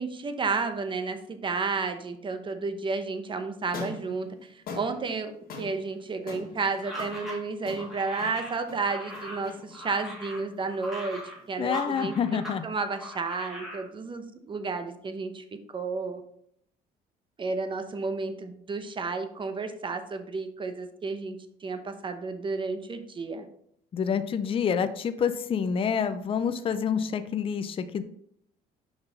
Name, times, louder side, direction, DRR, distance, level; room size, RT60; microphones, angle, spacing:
voice 1, 0.0-5.3 5.6-11.2 11.5-15.4 15.7-16.2 17.4-23.5, right 4 dB, 30° right, 9 dB, 0.9 m, -32 dB
sound 1, 3.6-11.9, left 4 dB, 60° left, 1.7 m, -44 dB
sound 2, 6.8-12.6 12.9-13.8, equal, ahead, 2.5 m, -40 dB
voice 2, 11.6-12.7 23.9-28.0, left 7 dB, 35° left, 10 dB, 0.5 m, -27 dB
6.0 x 5.5 x 4.0 m, 0.69 s
cardioid pair, 110°, 17 cm